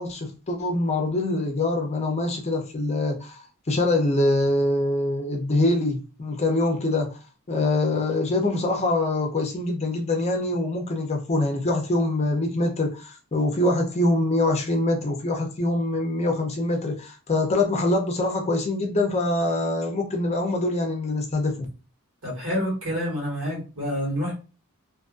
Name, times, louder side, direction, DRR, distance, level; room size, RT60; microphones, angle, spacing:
voice 1, 0.0-3.4 3.7-7.2 7.5-21.7, left 2 dB, 30° left, 0.5 m, -24 dB
voice 2, 22.2-24.3, equal, 70° right, 1.5 m, -28 dB
2.6 x 2.5 x 2.4 m
head